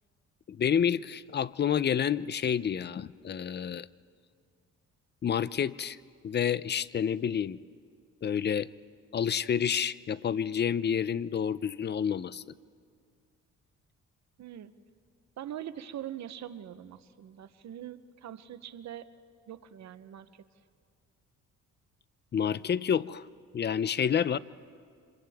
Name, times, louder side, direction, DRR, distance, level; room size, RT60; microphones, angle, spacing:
voice 1, 0.5-3.9 5.2-6.0 6.2-7.6 8.2-8.7 9.1-12.4 22.3-23.3 23.5-24.4, left 8 dB, 35° left, 18 dB, 0.5 m, -29 dB
voice 2, 14.4-14.7 15.4-19.1 19.5-20.3, right 11 dB, 65° right, 13 dB, 0.9 m, -42 dB
29.5 x 26.5 x 3.6 m, 2.2 s
cardioid pair, 90°, 30 cm